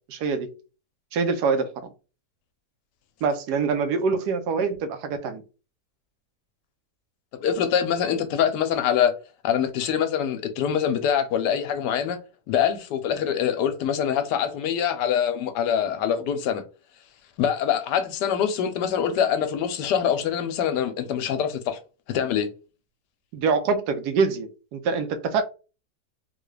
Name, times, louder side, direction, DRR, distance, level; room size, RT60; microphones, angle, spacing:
voice 1, 0.1-0.5 1.1-1.7 3.2-5.4 23.3-25.4, right 5 dB, 75° right, 1.2 m, -25 dB
voice 2, 7.3-9.1 9.4-12.2 12.5-16.6 17.4-21.8 22.1-22.5, left 8 dB, 85° left, 1.2 m, -24 dB
3.6 x 2.3 x 3.2 m
omnidirectional pair, 1.8 m